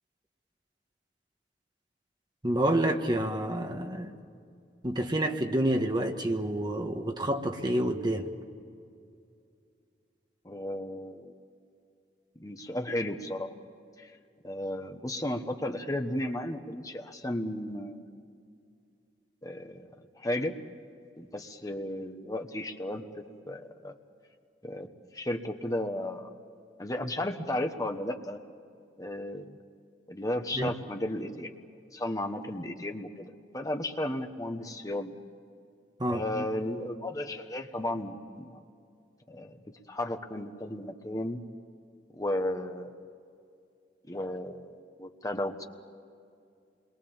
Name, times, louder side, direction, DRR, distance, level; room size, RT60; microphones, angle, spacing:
voice 1, 2.4-4.2 4.8-8.3 30.5-30.7 36.0-36.4, right 1 dB, 25° right, 4 dB, 1.5 m, -28 dB
voice 2, 10.4-11.3 12.4-13.5 14.0-14.1 14.4-18.1 19.4-19.9 20.2-20.5 21.2-24.0 24.6-24.9 25.1-26.3 26.8-28.4 29.0-29.6 30.1-31.6 31.9-33.3 33.5-35.1 36.1-38.6 39.3-39.6 39.9-41.4 42.2-42.9 44.1-44.7 45.0-45.6, left 1 dB, 20° left, 5 dB, 1.3 m, -34 dB
27.5 x 22.5 x 7.3 m, 2.4 s
head